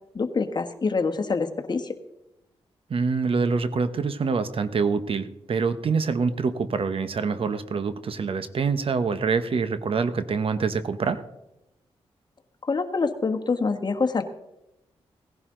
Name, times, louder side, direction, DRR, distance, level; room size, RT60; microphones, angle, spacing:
voice 1, 0.1-2.0 12.7-14.2, left 4 dB, 40° left, 6 dB, 1.5 m, -25 dB
voice 2, 2.9-11.2, right 5 dB, 60° right, 11 dB, 1.1 m, -25 dB
18.0 x 11.0 x 3.9 m, 0.90 s
cardioid pair, 60°, 11 cm